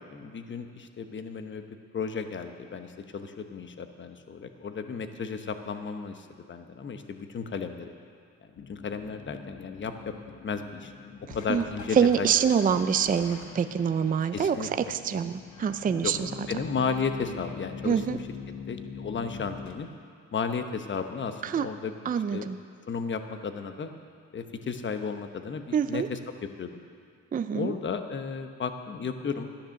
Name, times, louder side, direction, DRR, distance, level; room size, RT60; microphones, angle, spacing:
voice 1, 0.1-1.6 1.9-7.9 8.7-10.1 10.4-10.9 11.3-12.3 12.7-12.8 14.3-14.7 15.1-15.2 16.0-16.1 16.5-18.2 18.7-19.9 20.3-21.9 22.3-22.5 22.9-23.9 24.3-26.2 26.6-26.8 27.5-29.5, left 5 dB, 40° left, 7 dB, 1.0 m, -34 dB
sound 1, 8.6-19.7, left 6 dB, 70° left, 1.2 m, -43 dB
voice 2, 11.9-16.3 17.8-18.2 21.4-21.7 22.1-22.6 25.7-26.1 27.3-27.7, right 7 dB, 30° right, 9 dB, 0.5 m, -25 dB
13.0 x 10.0 x 6.5 m, 2.3 s
cardioid pair, 90°, 30 cm